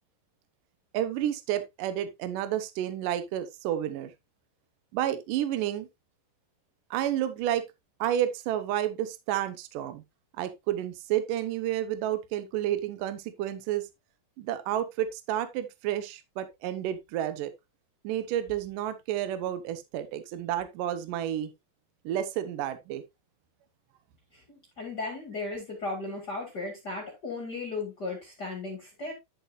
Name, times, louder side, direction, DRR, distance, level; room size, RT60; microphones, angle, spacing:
voice 1, 0.9-4.1 4.9-5.9 6.9-7.6 8.0-10.0 10.4-13.9 14.4-17.5 18.0-21.5 22.1-23.0, right 11 dB, 75° right, 2.4 m, -30 dB
voice 2, 24.3-29.1, left 3 dB, 35° left, 2.2 m, -36 dB
10.5 x 7.3 x 2.6 m
omnidirectional pair, 4.1 m